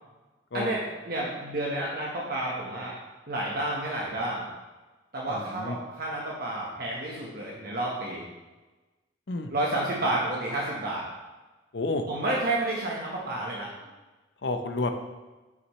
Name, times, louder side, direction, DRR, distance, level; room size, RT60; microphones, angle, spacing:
voice 1, 0.5-2.9 3.3-4.4 5.1-8.2 9.5-11.0 12.1-13.7, right 1 dB, 55° right, -3 dB, 1.2 m, -30 dB
voice 2, 5.3-5.8 9.3-9.5 11.7-12.1 14.4-14.9, left 2 dB, 65° left, 6 dB, 0.7 m, -30 dB
9.2 x 6.3 x 3.2 m, 1.2 s
head